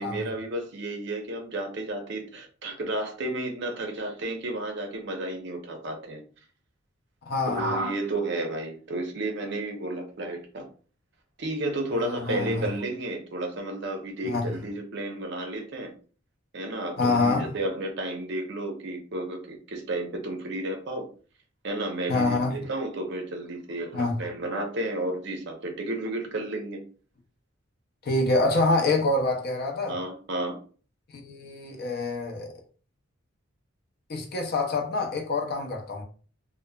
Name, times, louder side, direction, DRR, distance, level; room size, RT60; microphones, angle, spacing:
voice 1, 0.0-6.2 7.5-10.7 11.4-15.9 16.5-21.1 21.6-26.8 29.9-30.6, right 1 dB, 60° right, 0.6 m, -32 dB
voice 2, 7.3-7.7 11.9-12.7 14.2-14.5 17.0-17.5 22.1-22.6 23.9-24.2 28.0-30.0 31.1-32.5 34.1-36.0, left 2 dB, 50° left, 0.5 m, -26 dB
2.9 x 2.1 x 2.2 m
head